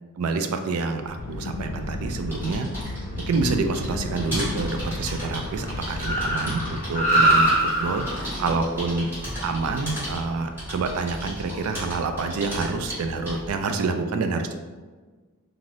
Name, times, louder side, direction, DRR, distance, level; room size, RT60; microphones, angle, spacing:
voice 1, 0.2-2.7 3.3-8.0 8.4-9.1 9.4-14.5, right 4 dB, 70° right, 6 dB, 0.3 m, -27 dB
sound 1, 1.2-6.8, left 2 dB, 85° left, 0.3 m, -35 dB
Car, 1.2-10.7, right 1 dB, 35° left, 0.7 m, -27 dB
sound 2, 2.2-13.6, equal, 10° right, 1.3 m, -35 dB
2.6 x 2.5 x 3.2 m, 1.4 s
head